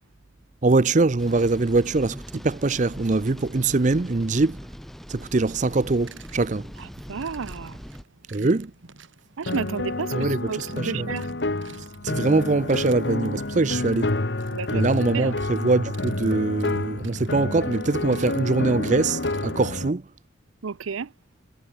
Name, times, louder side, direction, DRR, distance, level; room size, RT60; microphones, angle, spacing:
voice 1, 0.6-4.6 5.1-6.7 8.3-8.7 10.1-11.1 12.0-14.1 14.7-20.0, right 3 dB, 35° right, 0.6 m, -23 dB
sound 1, 1.2-8.0, equal, ahead, 0.9 m, -41 dB
sound 2, 5.6-19.7, right 4 dB, 75° right, 2.1 m, -50 dB
voice 2, 6.8-7.8 9.4-11.3 14.5-15.4 20.6-21.1, right 5 dB, 90° right, 0.6 m, -32 dB
sound 3, 9.5-19.9, left 2 dB, 55° left, 1.3 m, -29 dB
head